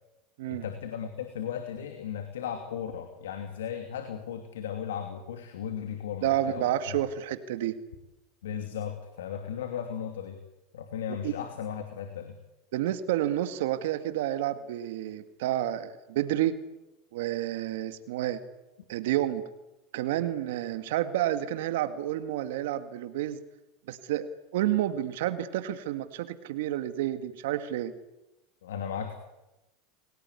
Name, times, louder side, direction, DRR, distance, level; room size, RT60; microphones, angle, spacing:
voice 1, 0.5-7.0 8.4-10.4 10.7-12.3 28.6-29.2, left 8 dB, 90° left, 7 dB, 2.7 m, -36 dB
voice 2, 6.2-7.8 11.2-11.3 12.7-16.6 17.1-18.4 18.9-19.4 19.9-23.4 23.9-27.9, right 12 dB, 75° right, 11 dB, 1.9 m, -30 dB
30.0 x 18.5 x 9.7 m, 0.98 s
supercardioid pair, 110°, 0 cm